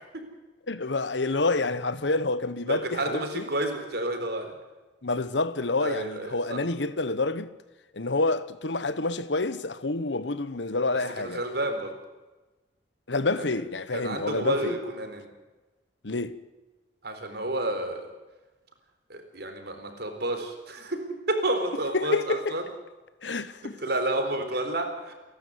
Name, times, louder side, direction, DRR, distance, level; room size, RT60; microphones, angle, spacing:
voice 1, 0.7-3.4 5.0-7.5 7.9-11.4 13.1-14.7 16.0-16.4 21.9-22.6 23.2-23.8, left 3 dB, 85° left, 1.3 m, -28 dB
voice 2, 2.7-4.5 5.8-6.6 11.2-11.9 13.4-13.5 13.9-15.3 17.0-18.1 19.1-21.0 21.3-22.6 23.8-25.1, right 1 dB, 65° right, 4.0 m, -30 dB
29.5 x 12.0 x 9.4 m
head